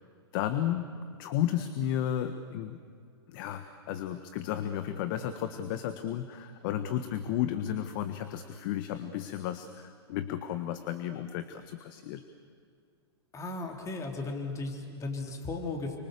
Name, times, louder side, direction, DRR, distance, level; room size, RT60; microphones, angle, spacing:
voice 1, 0.3-0.9 1.2-2.8 3.3-12.2, left 11 dB, 50° left, 9 dB, 1.5 m, -33 dB
voice 2, 13.3-16.0, left 3 dB, 20° left, 2 dB, 4.1 m, -36 dB
30.0 x 25.0 x 7.0 m, 2.2 s
hypercardioid pair, 110°, 14 cm